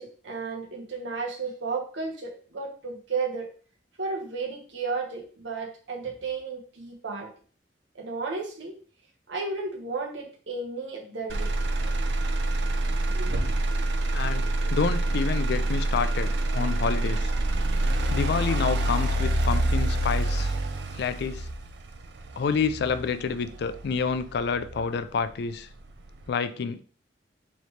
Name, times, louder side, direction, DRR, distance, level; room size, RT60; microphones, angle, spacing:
voice 1, 0.0-3.5 4.0-7.3 8.0-8.7 9.3-11.5 13.1-13.3, right 4 dB, 90° right, 1.1 m, -33 dB
Motor vehicle (road), 11.3-25.3 25.8-26.3, right 1 dB, 65° right, 0.5 m, -27 dB
voice 2, 14.1-14.5 14.7-17.3 18.1-20.5 20.9-21.5 22.4-25.7 26.3-26.8, left 5 dB, 65° left, 0.3 m, -28 dB
4.2 x 3.0 x 3.2 m
head